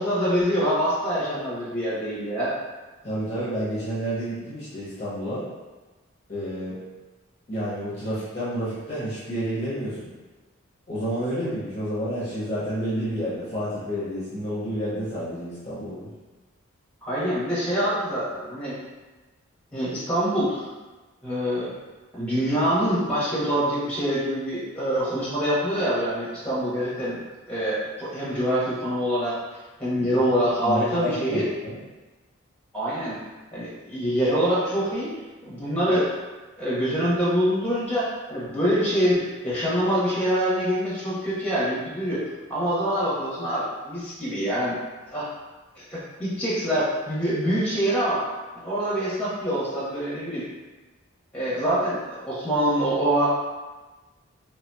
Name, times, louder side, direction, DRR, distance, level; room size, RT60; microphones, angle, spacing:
voice 1, 0.0-2.5 17.0-18.8 19.7-20.6 21.2-21.7 22.1-27.2 27.5-29.4 29.8-31.5 32.7-33.2 33.5-35.1 35.4-36.1 36.6-42.2 42.5-44.7 45.1-45.3 45.7-48.3 48.5-50.5 51.3-53.3, equal, 5° left, -9 dB, 0.9 m, -25 dB
voice 2, 3.0-5.4 6.3-6.8 7.5-10.1 10.9-16.1 30.1-30.2 30.6-31.8, equal, 30° left, -10 dB, 0.7 m, -30 dB
3.2 x 2.8 x 2.2 m, 1.2 s
head